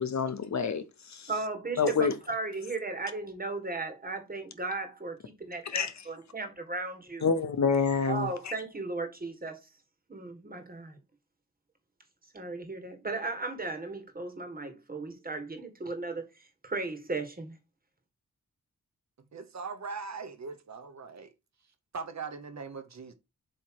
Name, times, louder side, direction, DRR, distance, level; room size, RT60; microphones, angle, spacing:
voice 1, 0.0-1.3 1.8-2.2 5.6-6.0 7.2-8.5, left 5 dB, 60° left, 0.9 m, -28 dB
voice 2, 1.3-2.0 2.3-7.3 8.1-9.6 10.1-11.0 12.3-16.2 16.6-17.6, right 3 dB, 25° right, 1.7 m, -36 dB
voice 3, 19.3-21.3 21.9-23.1, right 4 dB, 55° right, 0.9 m, -40 dB
7.5 x 3.1 x 4.6 m
wide cardioid pair, 125°, 32 cm